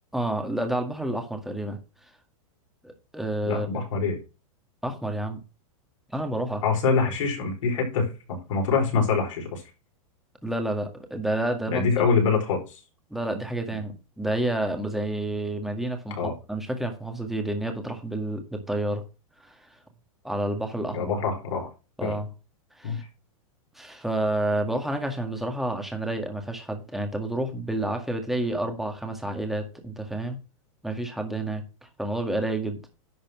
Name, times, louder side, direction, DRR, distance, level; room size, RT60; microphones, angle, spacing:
voice 1, 0.1-1.8 2.8-3.7 4.8-5.4 6.1-6.6 10.4-12.1 13.1-19.0 19.4-19.7 20.2-21.1 22.0-22.3 22.7-23.0 23.7-30.4 30.8-32.8, right 1 dB, ahead, 5 dB, 1.8 m, -29 dB
voice 2, 3.4-4.2 6.6-9.6 11.7-12.8 13.7-13.8 16.1-16.3 20.9-21.7 22.0-22.2 22.8-23.0, left 5 dB, 65° left, 1 dB, 4.6 m, -25 dB
11.0 x 4.1 x 6.1 m, 0.31 s
supercardioid pair, 145°, 18 cm